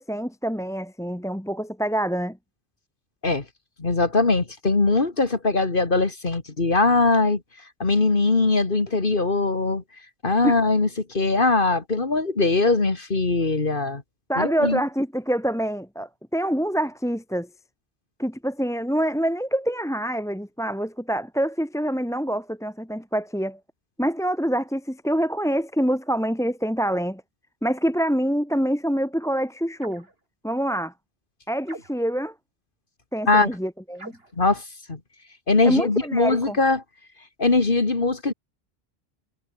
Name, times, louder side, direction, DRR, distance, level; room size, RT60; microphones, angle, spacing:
voice 1, 0.0-2.4 10.4-10.6 14.3-17.5 18.2-23.6 24.0-27.2 27.6-30.0 30.4-30.9 31.5-32.3 33.1-34.1 35.6-36.6, equal, 5° left, 1.1 m, -26 dB
voice 2, 3.8-7.4 7.8-9.8 10.2-14.0 14.4-14.8 33.3-33.5 34.4-34.6 34.9-35.0 35.5-36.8 37.4-38.3, left 3 dB, 55° left, 2.3 m, -21 dB
sound 1, 29.8-30.2 31.6-32.2 33.9-34.4, right 2 dB, 70° right, 4.4 m, -43 dB
omnidirectional pair, 1.0 m